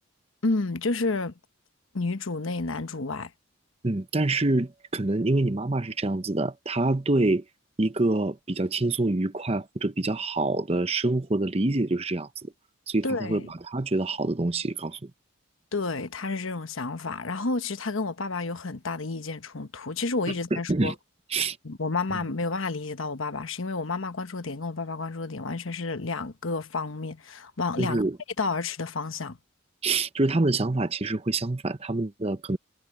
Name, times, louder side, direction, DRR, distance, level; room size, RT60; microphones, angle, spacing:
voice 1, 0.4-1.3 1.9-3.3 13.0-13.4 15.7-20.9 21.6-28.0 28.4-29.4, left 3 dB, 70° left, 1.1 m, -30 dB
voice 2, 3.8-7.4 7.8-12.5 12.9-15.1 20.5-20.9 21.3-21.6 22.1-22.2 27.8-28.2 29.8-32.6, right 2 dB, 30° right, 0.8 m, -26 dB
head